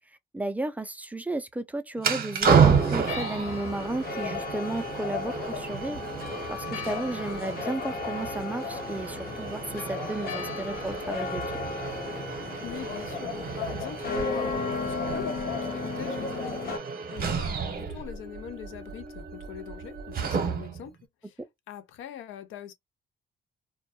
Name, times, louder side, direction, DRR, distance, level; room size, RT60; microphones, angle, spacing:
voice 1, 0.3-6.0 6.5-11.4, right 2 dB, 10° right, 0.4 m, -33 dB
sound 1, 2.0-20.9, right 6 dB, 50° right, 0.7 m, -30 dB
sound 2, 2.5-16.8, left 5 dB, 50° left, 0.8 m, -35 dB
voice 2, 12.6-16.8 17.1-20.9 21.2-21.4 21.7-22.7, left 10 dB, 85° left, 0.5 m, -42 dB
2.2 x 2.1 x 2.7 m
cardioid pair, 90°, 20 cm